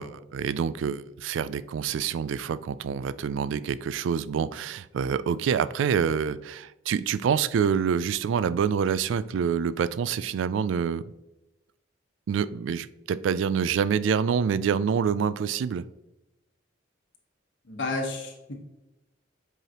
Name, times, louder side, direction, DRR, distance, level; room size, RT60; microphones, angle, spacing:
voice 1, 0.0-11.0 12.3-15.8, right 7 dB, 70° right, 16 dB, 0.3 m, -26 dB
voice 2, 17.7-18.6, left 2 dB, 70° left, 0 dB, 1.2 m, -31 dB
7.8 x 4.7 x 2.9 m, 0.99 s
head